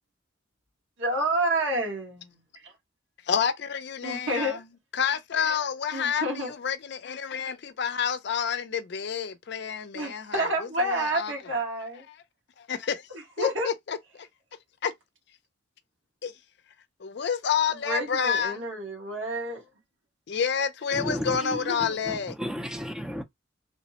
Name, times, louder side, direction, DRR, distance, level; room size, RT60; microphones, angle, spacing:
voice 1, 1.0-2.7 4.0-4.6 5.9-6.5 9.9-12.0 13.1-13.7 17.7-19.6 21.4-22.0, right 1 dB, 90° right, 1.6 m, -29 dB
voice 2, 3.3-4.6 4.9-10.5 10.8-11.3 12.6-13.1 13.4-14.3 14.8-14.9 16.2-16.3 17.0-18.6 20.3-22.4, left 7 dB, 60° left, 0.4 m, -29 dB
voice 3, 20.9-21.4 22.1-23.2, equal, 5° right, 0.4 m, -33 dB
3.2 x 2.1 x 2.8 m
head